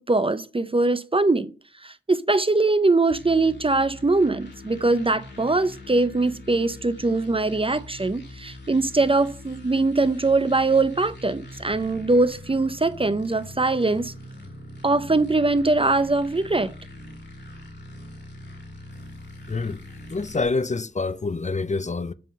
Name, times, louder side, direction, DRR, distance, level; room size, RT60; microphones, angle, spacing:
voice 1, 0.0-1.5 1.8-14.1 14.8-16.7, right 3 dB, 30° right, 0.4 m, -22 dB
sound 1, 3.1-20.4, left 1 dB, 65° left, 1.8 m, -42 dB
voice 2, 19.5-19.8 20.1-22.1, left 3 dB, 35° left, 0.4 m, -26 dB
7.5 x 3.7 x 6.4 m
wide cardioid pair, 65°, 20 cm